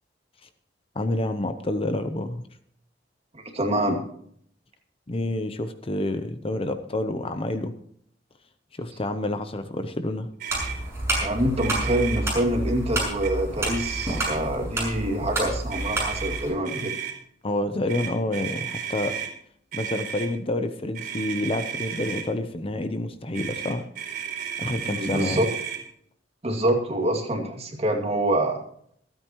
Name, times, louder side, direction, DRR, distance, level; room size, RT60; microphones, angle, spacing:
voice 1, 0.9-2.5 5.1-7.7 8.8-10.3 17.4-19.2 19.7-23.9 24.6-25.4, left 1 dB, 30° left, 9 dB, 0.8 m, -28 dB
voice 2, 3.3-4.0 11.2-16.9 24.9-25.4 26.4-28.6, right 1 dB, 35° right, 2 dB, 2.4 m, -26 dB
Motor vehicle (road), 10.4-10.8 11.1-11.3 11.5-12.2 13.0-13.3 13.6-14.5 15.7-17.1 17.9-19.3 19.7-20.3 20.9-22.3 23.3-25.8, right 8 dB, 55° right, 4.4 m, -33 dB
white-cane, 10.5-16.5, right 1 dB, 15° right, 6.9 m, -29 dB
26.5 x 9.1 x 3.1 m, 0.64 s
head